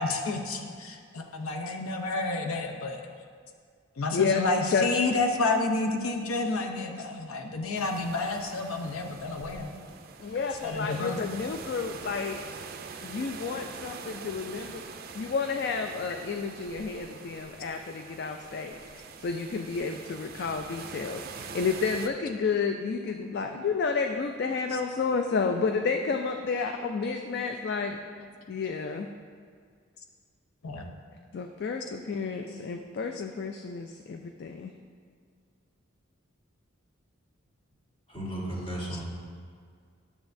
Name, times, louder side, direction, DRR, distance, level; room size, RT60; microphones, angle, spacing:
voice 1, 0.0-3.0 4.0-9.7 10.6-11.2 23.3-23.4 30.6-30.9 32.5-32.8, left 3 dB, 90° left, 4 dB, 0.6 m, -30 dB
voice 2, 4.1-4.4 4.7-4.9 10.2-12.4 13.0-28.0 28.5-29.1 31.3-34.7, left 5 dB, 50° left, 5 dB, 0.3 m, -31 dB
sound 1, 7.7-22.1, right 5 dB, 45° right, 0.4 m, -44 dB
voice 3, 38.1-39.0, right 1 dB, 25° left, -4 dB, 1.3 m, -35 dB
10.5 x 7.0 x 2.6 m, 2.1 s
head